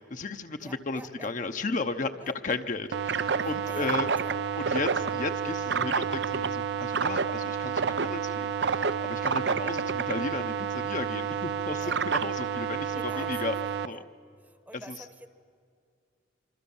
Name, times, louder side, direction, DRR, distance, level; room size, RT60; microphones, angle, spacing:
voice 1, 0.1-4.1 4.6-13.6 13.8-14.0 14.7-15.0, left 3 dB, 40° left, 7 dB, 0.8 m, -34 dB
voice 2, 0.6-1.3 2.2-2.3 3.6-4.3 11.8-12.0 12.9-13.3 13.7-14.1 14.4-15.3, right 1 dB, 10° right, 10 dB, 1.0 m, -47 dB
sound 1, 2.9-13.9, right 6 dB, 60° right, 0.6 m, -29 dB
25.5 x 24.5 x 7.2 m, 2.3 s
head